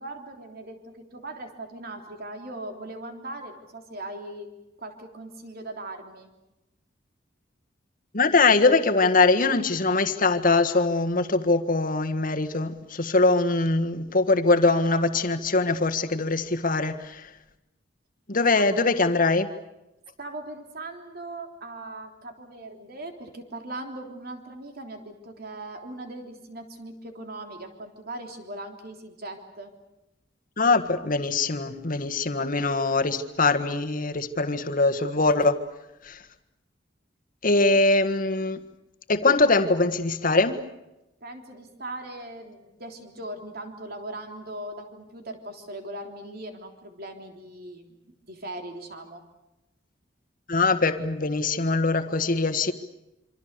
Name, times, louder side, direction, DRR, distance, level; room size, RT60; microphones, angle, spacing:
voice 1, 0.0-4.5 4.8-6.3 18.5-18.7 20.2-29.7 37.7-37.8 41.2-49.2, right 1 dB, 55° right, 3.5 m, -39 dB
voice 2, 8.1-17.2 18.3-19.5 30.6-35.6 36.0-36.2 37.4-38.6 39.1-40.6 50.5-52.7, left 3 dB, 50° left, 1.6 m, -22 dB
26.5 x 25.5 x 6.8 m
head